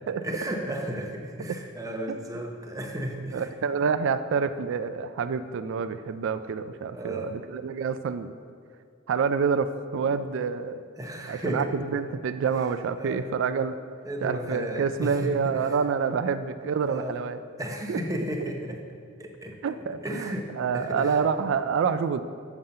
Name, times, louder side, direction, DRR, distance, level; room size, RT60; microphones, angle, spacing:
voice 1, 0.0-3.9 6.9-7.4 11.0-11.7 13.0-13.3 14.1-15.8 16.2-16.5 16.9-17.2 17.6-18.8 19.2-19.6 20.0-21.2, right 1 dB, 15° right, 3 dB, 0.7 m, -34 dB
voice 2, 3.3-8.3 9.1-10.8 11.3-13.8 14.2-17.4 17.9-18.2 19.6-22.2, right 6 dB, 65° right, 11 dB, 0.3 m, -27 dB
7.2 x 5.5 x 6.5 m, 2.2 s
head